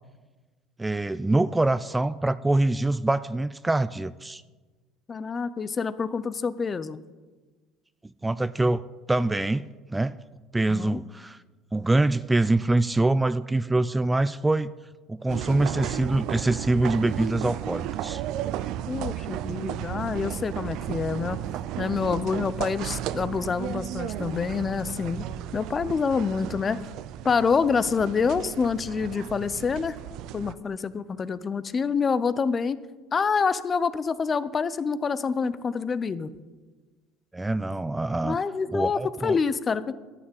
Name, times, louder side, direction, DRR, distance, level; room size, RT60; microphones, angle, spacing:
voice 1, 0.8-4.4 8.2-8.8 9.1-10.2 10.5-11.4 11.7-14.7 15.1-18.2 37.3-38.4 38.7-39.4, right 2 dB, 10° right, 15 dB, 0.4 m, -24 dB
voice 2, 5.1-7.0 10.7-11.0 18.9-21.4 21.8-25.2 25.5-26.8 27.2-30.0 30.3-32.8 33.1-36.3 38.2-39.9, left 5 dB, 30° left, 15 dB, 0.7 m, -27 dB
sound 1, 15.3-30.5, right 12 dB, 65° right, 0.5 m, -34 dB
11.5 x 6.4 x 8.8 m, 1.3 s
supercardioid pair, 90°, 0 cm